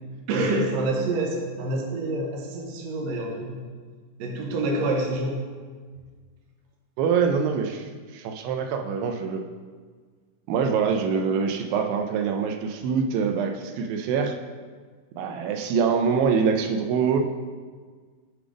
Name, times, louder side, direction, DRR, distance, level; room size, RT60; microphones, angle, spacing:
voice 1, 0.3-3.6 4.2-5.4, right 2 dB, 70° right, 0 dB, 1.7 m, -27 dB
voice 2, 7.0-9.4 10.5-14.4 15.2-17.2, right 6 dB, 90° right, 5 dB, 2.3 m, -24 dB
7.8 x 3.4 x 4.9 m, 1.5 s
omnidirectional pair, 4.0 m